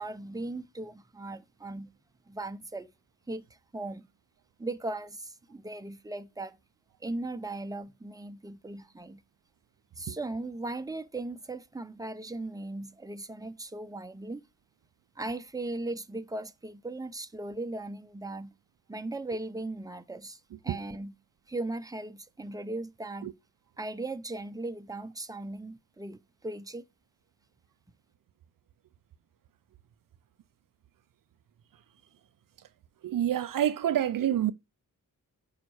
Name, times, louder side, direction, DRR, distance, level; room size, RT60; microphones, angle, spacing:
voice 1, 0.0-1.9 2.3-2.9 3.3-3.5 3.7-4.1 4.6-6.6 7.0-9.2 10.0-14.4 15.2-18.5 18.9-21.1 21.5-23.3 23.8-26.8, right 2 dB, 10° right, 0.8 m, -38 dB
voice 2, 33.0-34.5, right 11 dB, 70° right, 0.5 m, -27 dB
5.8 x 5.1 x 4.7 m
cardioid pair, 45°, 34 cm